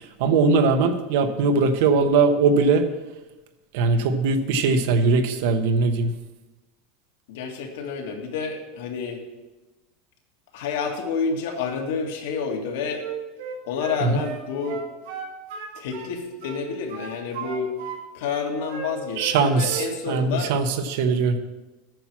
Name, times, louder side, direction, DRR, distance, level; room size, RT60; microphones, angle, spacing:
voice 1, 0.0-2.9 3.7-6.1 14.0-14.2 19.2-21.4, right 4 dB, 60° right, 8 dB, 0.9 m, -20 dB
voice 2, 7.3-9.2 10.5-13.0 13.6-14.8 15.7-17.8 18.1-20.5, left 5 dB, 75° left, 2 dB, 1.9 m, -29 dB
Wind instrument woodwind instrument, 13.0-16.1 16.4-18.0 18.2-19.4 19.6-19.9, right 6 dB, 80° right, 2.4 m, -35 dB
9.0 x 5.9 x 7.2 m, 1.1 s
supercardioid pair, 175°, 0 cm